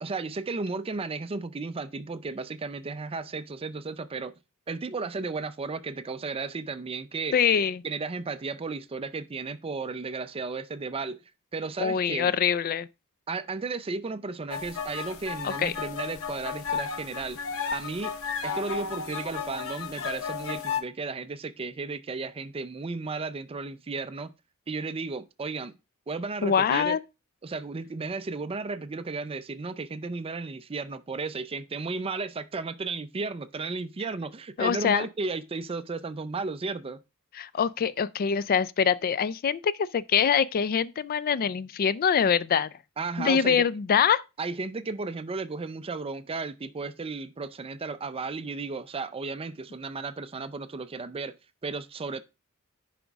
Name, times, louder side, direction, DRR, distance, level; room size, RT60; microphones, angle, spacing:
voice 1, 0.0-4.3 4.7-7.3 7.8-11.2 11.5-12.3 13.3-17.4 17.7-18.1 18.4-24.3 24.7-25.7 26.1-27.0 27.4-37.0 42.2-42.3 43.0-43.6 44.4-51.4 51.6-52.2, right 4 dB, 25° right, 0.4 m, -34 dB
voice 2, 7.3-7.8 11.8-12.9 15.4-15.7 26.4-27.0 34.6-35.0 37.3-42.7 43.2-44.2, left 7 dB, 40° left, 0.3 m, -24 dB
sound 1, 14.5-20.8, left 6 dB, 65° left, 0.9 m, -34 dB
10.0 x 5.0 x 3.5 m
head